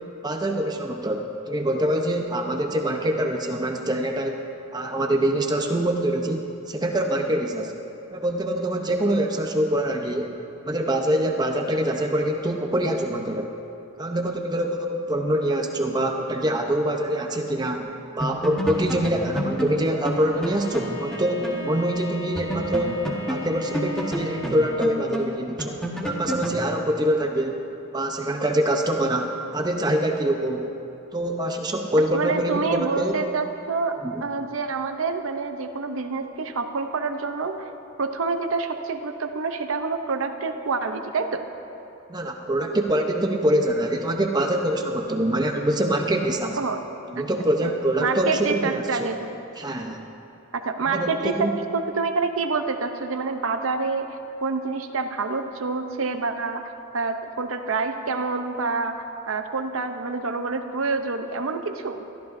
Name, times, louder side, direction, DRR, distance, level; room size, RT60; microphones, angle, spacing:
voice 1, 0.2-4.4 4.7-7.7 8.1-10.3 10.6-13.5 14.0-17.8 18.2-23.0 23.3-25.8 26.0-27.6 27.9-30.7 31.1-33.2 34.0-34.2 42.1-46.6 47.1-49.1 49.6-50.0 50.9-51.5, right 1 dB, 20° right, 3 dB, 0.7 m, -24 dB
sound 1, 17.8-17.9 18.2-21.6 21.9-22.0 22.4-26.6, equal, 5° left, 1.3 m, -30 dB
Bowed string instrument, 20.1-24.9, left 1 dB, 65° left, 3.2 m, -39 dB
voice 2, 32.1-33.9 34.2-37.7 38.0-41.4 46.6-46.8 47.6-47.7 48.0-49.3 50.5-56.7 56.9-62.1, right 4 dB, 65° right, 7 dB, 0.7 m, -27 dB
22.5 x 14.0 x 2.6 m, 2.8 s
head